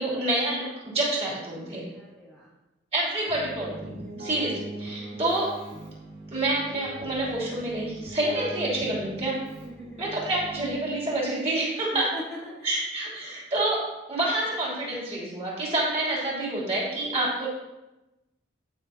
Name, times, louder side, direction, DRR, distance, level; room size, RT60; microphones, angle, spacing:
voice 1, 0.0-1.8 2.9-5.5 6.3-9.4 10.0-12.1 12.6-17.5, right 1 dB, 35° right, -5 dB, 2.7 m, -28 dB
voice 2, 1.9-2.5 4.0-4.3 5.0-5.2 9.6-10.1 11.9-12.7, equal, ahead, -8 dB, 1.2 m, -41 dB
Keyboard (musical), 3.3-11.1, right 2 dB, 50° right, 2.7 m, -41 dB
12.0 x 5.5 x 2.7 m, 1.0 s
head